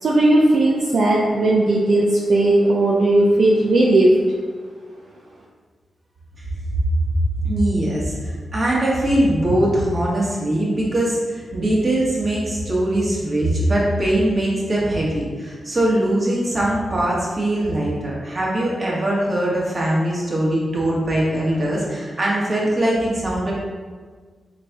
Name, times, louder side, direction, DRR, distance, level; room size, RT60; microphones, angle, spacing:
voice 1, 0.0-4.1, right 2 dB, 65° right, -4 dB, 0.5 m, -16 dB
voice 2, 7.4-23.5, right 1 dB, 40° right, -5 dB, 1.5 m, -21 dB
4.1 x 3.3 x 3.4 m, 1.5 s
cardioid pair, 55°, 0 cm